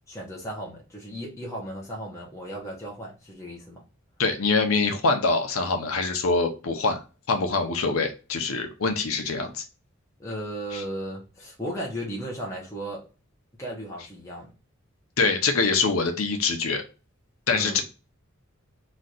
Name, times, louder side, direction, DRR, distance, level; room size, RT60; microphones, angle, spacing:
voice 1, 0.1-3.8 10.2-13.0 13.6-14.5 17.5-17.8, right 1 dB, 15° left, 0.9 m, -35 dB
voice 2, 4.2-7.0 7.3-9.6 10.7-10.8 15.2-16.8 17.5-17.8, left 4 dB, 85° left, 0.8 m, -24 dB
3.1 x 2.5 x 3.9 m
head